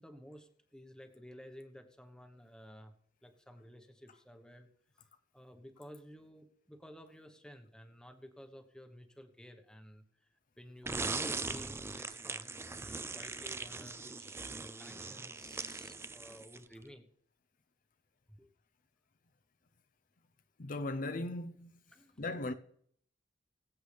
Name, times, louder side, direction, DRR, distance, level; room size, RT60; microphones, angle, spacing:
voice 1, 0.0-2.9 3.2-4.7 4.9-5.1 5.3-10.0 10.6-17.1 18.4-18.5 21.9-22.2, equal, 5° left, 1.1 m, -54 dB
sound 1, 10.8-16.7, right 3 dB, 15° right, 0.4 m, -40 dB
voice 2, 20.6-21.7 22.2-22.5, left 2 dB, 45° left, 0.6 m, -37 dB
22.5 x 8.1 x 3.4 m
head